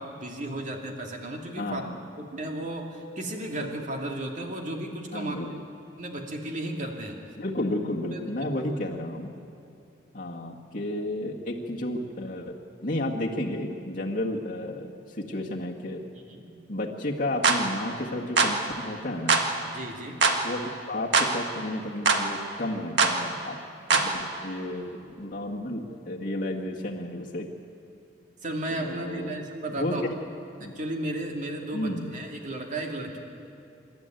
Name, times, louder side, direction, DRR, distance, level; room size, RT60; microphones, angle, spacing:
voice 1, 0.0-1.8 2.2-5.4 6.0-7.2 8.1-8.6 16.3-16.6 19.6-20.2 24.0-24.2 28.4-30.0 30.6-33.2, right 1 dB, 45° right, 2 dB, 2.5 m, -34 dB
voice 2, 1.6-2.0 5.1-5.5 7.4-9.3 10.1-12.5 12.8-16.0 16.7-19.4 20.4-23.6 23.9-27.4 28.7-29.4 29.7-29.9 30.6-30.7 31.7-32.1, left 1 dB, 50° left, -3 dB, 1.8 m, -32 dB
sound 1, 17.4-17.6 18.4-18.6 19.3-19.5 20.2-20.4 21.1-21.3 22.1-22.2 23.0-23.2 23.9-24.1, right 4 dB, 85° right, 1.7 m, -21 dB
26.5 x 12.0 x 9.1 m, 2.6 s
head